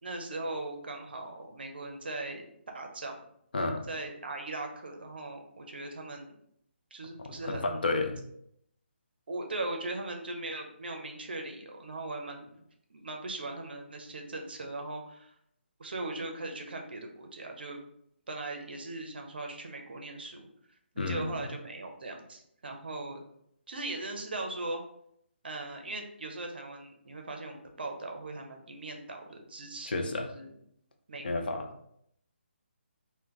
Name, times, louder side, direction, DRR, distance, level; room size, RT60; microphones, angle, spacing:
voice 1, 0.0-2.5 2.7-3.2 3.9-6.4 6.9-7.8 9.3-12.5 12.9-15.3 15.8-17.8 18.3-20.5 20.9-23.2 23.7-24.8 25.4-29.9 30.3-30.5 31.1-31.7, right 2 dB, 55° right, 3 dB, 0.5 m, -39 dB
voice 2, 3.5-3.9 7.3-8.2 21.0-21.4 29.9-30.3 31.2-31.7, left 2 dB, 50° left, 4 dB, 0.4 m, -31 dB
2.3 x 2.1 x 3.8 m, 0.72 s
figure-of-eight pair, 145°, 6 cm